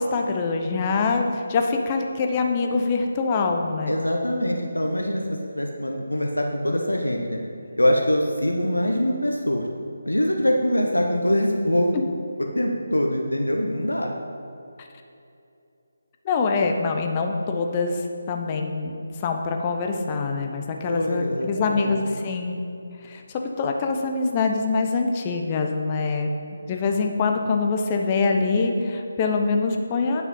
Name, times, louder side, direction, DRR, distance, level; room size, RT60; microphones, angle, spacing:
voice 1, 0.0-4.0 16.2-18.0 18.3-18.9 19.2-22.6 23.0-26.3 26.7-30.2, left 4 dB, 25° left, 3 dB, 0.8 m, -24 dB
voice 2, 3.9-7.4 7.8-9.7 10.0-12.0 12.4-14.1 20.8-22.0, equal, 85° left, 1 dB, 0.9 m, -23 dB
9.4 x 5.9 x 5.4 m, 2.7 s
figure-of-eight pair, 150°, 0 cm